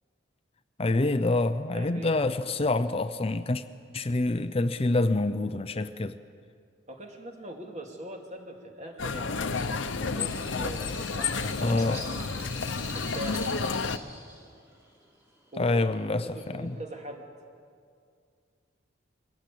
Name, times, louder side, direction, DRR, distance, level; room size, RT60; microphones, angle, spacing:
voice 1, 0.8-3.6 3.9-6.2 11.6-12.0 15.6-16.8, left 2 dB, 30° left, 10 dB, 0.6 m, -26 dB
voice 2, 1.7-2.1 6.9-9.5 9.9-11.9 12.9-13.5 15.5-15.9 16.2-17.3, right 1 dB, 35° right, 2 dB, 2.5 m, -41 dB
sound 1, 9.0-14.0, left 4 dB, 85° left, 0.9 m, -31 dB
Bird, 9.5-16.8, equal, 15° right, 3.1 m, -45 dB
22.5 x 17.5 x 8.5 m, 2.2 s
head